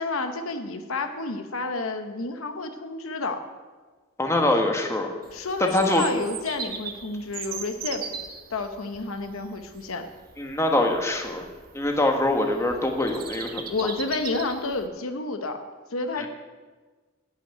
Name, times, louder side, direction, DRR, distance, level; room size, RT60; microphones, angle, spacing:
voice 1, 0.0-3.4 5.3-8.2 8.5-10.1 13.7-15.6 15.9-16.3, left 3 dB, 70° left, 7 dB, 0.9 m, -30 dB
voice 2, 4.2-5.1 5.6-6.0 10.4-11.4 11.7-13.6 16.2-16.3, left 1 dB, 15° left, 3 dB, 1.1 m, -23 dB
Bird vocalization bird call bird song, 5.2-14.9, right 6 dB, 45° right, 1.1 m, -39 dB
11.0 x 5.7 x 8.9 m, 1.4 s
head